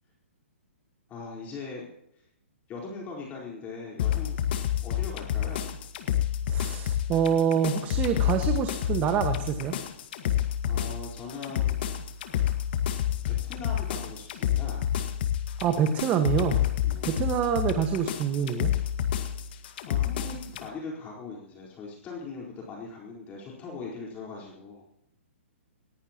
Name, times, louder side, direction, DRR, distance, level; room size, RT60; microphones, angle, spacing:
voice 1, 1.1-1.8 2.7-4.4 4.8-5.7 10.6-11.7 13.4-14.9 16.8-17.1 19.9-24.8, left 4 dB, 20° left, -3 dB, 4.4 m, -40 dB
sound 1, 4.0-20.7, left 11 dB, 50° left, 1.9 m, -29 dB
voice 2, 6.5-9.8 15.6-16.6 17.0-18.7, right 7 dB, 25° right, 6 dB, 1.6 m, -26 dB
21.0 x 19.5 x 3.0 m, 0.79 s
hypercardioid pair, 130°, 7 cm